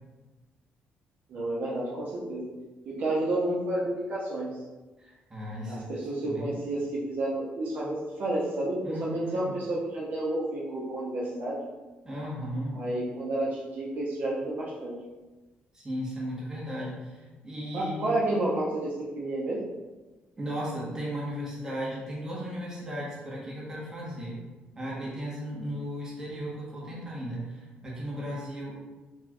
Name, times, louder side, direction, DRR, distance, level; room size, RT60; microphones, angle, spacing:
voice 1, 1.3-2.5 2.8-4.5 5.7-6.8 7.1-7.9 8.2-11.6 12.7-14.9 17.7-19.6, right 1 dB, 50° right, -5 dB, 0.7 m, -30 dB
voice 2, 5.0-5.9 6.2-6.5 8.8-9.5 12.0-12.8 15.7-18.2 20.4-24.4 24.8-28.7, equal, 15° right, -5 dB, 0.9 m, -36 dB
4.2 x 2.3 x 2.9 m, 1.2 s
cardioid pair, 155°, 4 cm